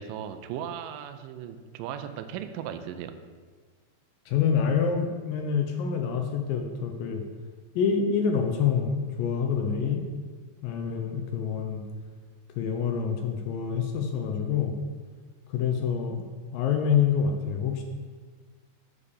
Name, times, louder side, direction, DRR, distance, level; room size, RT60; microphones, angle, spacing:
voice 1, 0.0-3.2, right 9 dB, 90° right, 9 dB, 1.9 m, -37 dB
voice 2, 4.3-7.2 7.8-10.0 10.6-11.8 12.6-14.7 15.5-16.3 16.5-17.8, left 7 dB, 75° left, 4 dB, 2.2 m, -26 dB
7.3 x 5.0 x 6.6 m, 1.5 s
omnidirectional pair, 4.5 m